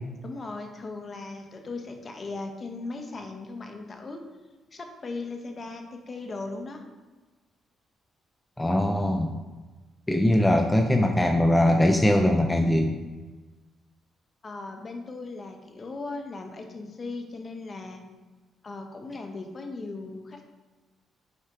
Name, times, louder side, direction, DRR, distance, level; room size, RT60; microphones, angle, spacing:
voice 1, 0.2-4.2 4.7-6.8 14.4-18.0 18.6-20.4, left 3 dB, 35° left, 4 dB, 0.9 m, -38 dB
voice 2, 8.6-9.4 10.1-13.0, left 1 dB, 10° left, 3 dB, 0.5 m, -21 dB
6.5 x 4.3 x 3.5 m, 1.3 s
cardioid pair, 90°, 0 cm